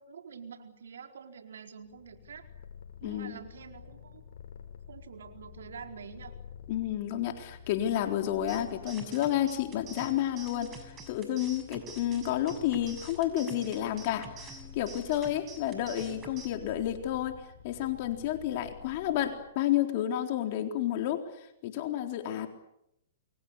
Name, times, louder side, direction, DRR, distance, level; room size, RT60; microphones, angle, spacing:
voice 1, 0.0-2.5 3.0-4.2 4.9-6.3, right 6 dB, 75° right, 5 dB, 4.4 m, -46 dB
Purr, 1.8-19.6, left 8 dB, 65° left, 6.1 m, -50 dB
voice 2, 3.0-3.4 6.7-17.4 17.6-21.2 21.6-22.5, left 12 dB, 50° left, 5 dB, 3.9 m, -30 dB
sound 1, 8.5-16.5, right 3 dB, 25° right, 6.6 m, -48 dB
28.5 x 23.5 x 8.3 m, 0.81 s
hypercardioid pair, 125°, 0 cm